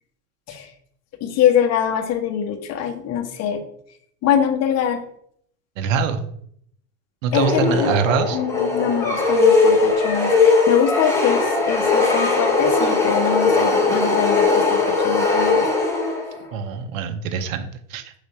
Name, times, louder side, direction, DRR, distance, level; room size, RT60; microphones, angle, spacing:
voice 1, 1.2-3.6 4.2-5.0 7.3-7.9 8.3-15.7, left 8 dB, 40° left, 4 dB, 1.2 m, -23 dB
voice 2, 5.8-6.3 7.2-8.4 16.5-18.2, right 6 dB, 85° right, 8 dB, 0.8 m, -24 dB
sound 1, 7.3-16.4, left 3 dB, 5° left, 1.4 m, -19 dB
5.0 x 3.6 x 5.7 m, 0.67 s
supercardioid pair, 120°, 38 cm